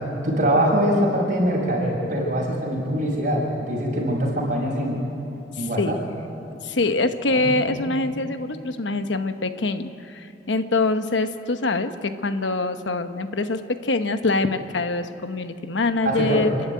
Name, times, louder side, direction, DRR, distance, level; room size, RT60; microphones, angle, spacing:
voice 1, 0.2-5.0 5.6-6.0 7.3-8.0 16.0-16.5, equal, 45° right, -2 dB, 6.0 m, -23 dB
voice 2, 5.6-6.0 6.6-16.5, left 3 dB, 85° left, 9 dB, 1.0 m, -24 dB
29.5 x 11.5 x 9.4 m, 2.9 s
head